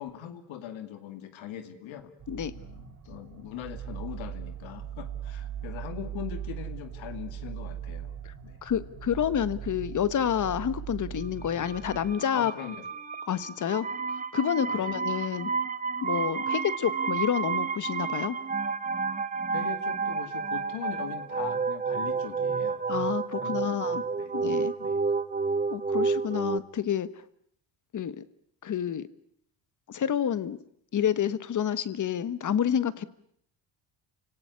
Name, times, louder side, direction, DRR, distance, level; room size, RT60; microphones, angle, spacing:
voice 1, 0.0-2.1 2.5-8.1 8.4-8.6 12.3-12.9 14.7-15.1 19.5-22.8 23.4-24.3 24.8-25.0, left 10 dB, 75° left, 9 dB, 2.5 m, -41 dB
sound 1, 2.2-12.1, right 9 dB, 40° right, 4.5 m, -39 dB
voice 2, 8.6-12.5 13.3-13.9 14.3-15.5 16.0-18.4 22.9-24.0 24.3-24.7 25.7-27.1 27.9-28.2 28.6-29.1 29.9-30.6 30.9-33.0, left 9 dB, 40° left, 16 dB, 1.4 m, -29 dB
sound 2, 11.4-26.6, right 5 dB, 15° right, 1.1 m, -30 dB
29.5 x 18.0 x 9.7 m, 0.69 s
cardioid pair, 140°, 47 cm